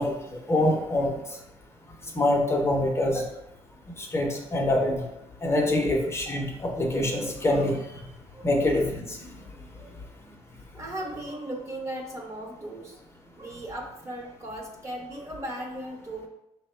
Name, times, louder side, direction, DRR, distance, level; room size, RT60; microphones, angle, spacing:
voice 1, 0.0-1.4 2.1-3.3 4.0-5.1 5.4-8.0 8.4-9.3, left 1 dB, 25° left, 0 dB, 0.6 m, -25 dB
voice 2, 10.7-13.0 13.4-16.3, right 1 dB, 25° right, 0 dB, 0.8 m, -37 dB
5.7 x 2.1 x 4.3 m, 0.87 s
cardioid pair, 145°, 11 cm